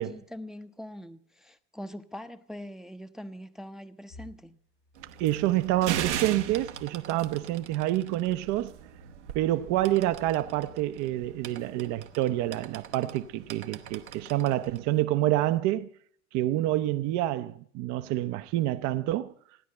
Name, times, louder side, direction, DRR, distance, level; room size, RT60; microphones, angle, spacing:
voice 1, 0.0-4.6, equal, ahead, 0.8 m, -43 dB
sound 1, 4.1-7.0 7.6-10.8, left 1 dB, 85° left, 5.2 m, -54 dB
sound 2, 5.0-15.0, right 10 dB, 80° right, 1.1 m, -40 dB
voice 2, 5.2-8.7 9.3-15.9 16.3-19.3, right 14 dB, 55° right, 0.7 m, -27 dB
16.0 x 10.5 x 7.8 m
hypercardioid pair, 65°, 34 cm